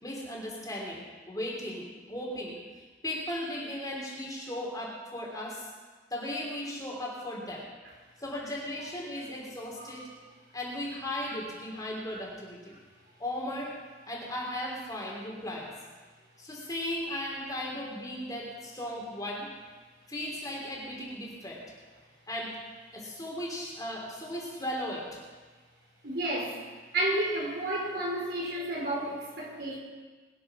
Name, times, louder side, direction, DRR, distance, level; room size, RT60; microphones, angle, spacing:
voice 1, 0.0-2.5 3.0-5.7 6.1-7.7 8.2-10.0 10.5-12.7 13.2-13.7 14.0-15.7 16.4-19.5 20.1-21.6 22.3-22.5 22.9-25.2, left 1 dB, 20° left, -3 dB, 3.3 m, -36 dB
voice 2, 26.0-26.6 26.9-29.8, right 1 dB, 60° right, -3 dB, 4.5 m, -31 dB
21.5 x 7.7 x 6.2 m, 1.4 s
head